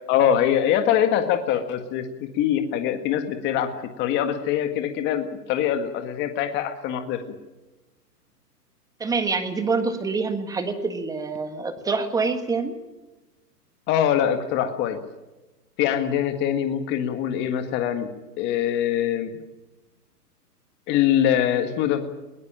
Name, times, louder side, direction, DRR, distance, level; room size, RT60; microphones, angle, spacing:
voice 1, 0.1-7.2 13.9-15.0 15.8-18.1 18.4-19.3 20.9-22.0, left 10 dB, 20° left, 7 dB, 1.7 m, -23 dB
voice 2, 9.0-12.7, right 4 dB, 5° right, 8 dB, 1.5 m, -26 dB
22.0 x 17.5 x 8.9 m, 1.1 s
hypercardioid pair, 145°, 49 cm